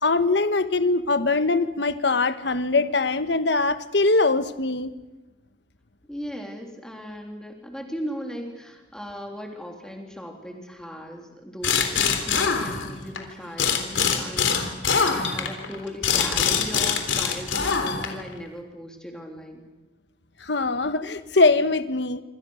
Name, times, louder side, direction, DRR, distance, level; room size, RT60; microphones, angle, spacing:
voice 1, 0.0-4.9 20.4-22.2, left 3 dB, 65° left, 11 dB, 1.4 m, -22 dB
voice 2, 6.1-14.7 15.0-19.7, equal, 5° left, 2 dB, 3.4 m, -37 dB
sound 1, 11.6-13.2 13.6-18.3, left 6 dB, 90° left, 3.6 m, -23 dB
26.5 x 26.5 x 6.5 m, 1.1 s
head